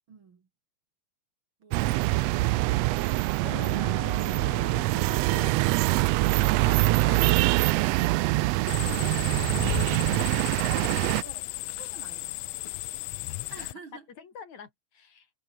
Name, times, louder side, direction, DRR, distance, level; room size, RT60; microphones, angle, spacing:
voice 1, 0.1-0.5 8.3-9.9 10.3-12.4 13.5-14.1, right 5 dB, 45° right, 2.8 m, -49 dB
sound 1, 1.7-11.2, right 19 dB, 80° right, 1.5 m, -24 dB
voice 2, 3.4-5.8 6.4-7.3 10.5-10.9 12.6-12.7 13.6-13.7 14.1-15.4, left 6 dB, 65° left, 4.2 m, -43 dB
sound 2, 8.7-13.7, left 19 dB, 85° left, 1.4 m, -35 dB
omnidirectional pair, 3.4 m